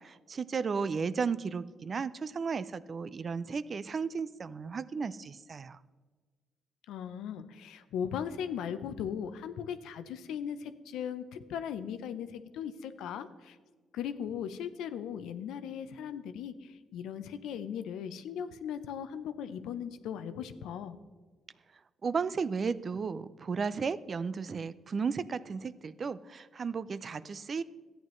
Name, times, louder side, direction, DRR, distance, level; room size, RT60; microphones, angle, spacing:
voice 1, 0.0-5.8 22.0-27.6, right 5 dB, 40° right, 16 dB, 0.4 m, -34 dB
voice 2, 6.9-13.6 13.9-16.5 16.9-21.0, left 8 dB, 85° left, 11 dB, 0.6 m, -38 dB
13.0 x 9.0 x 3.1 m, 1.4 s
cardioid pair, 90°, 0 cm